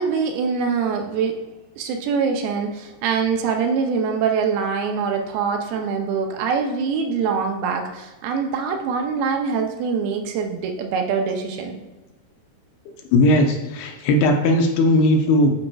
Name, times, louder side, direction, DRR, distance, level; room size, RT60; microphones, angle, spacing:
voice 1, 0.0-1.4 1.8-11.8, right 5 dB, 80° right, 4 dB, 2.4 m, -24 dB
voice 2, 13.1-15.5, left 1 dB, 85° left, 3 dB, 2.8 m, -17 dB
11.5 x 4.3 x 2.3 m, 1.1 s
omnidirectional pair, 4.5 m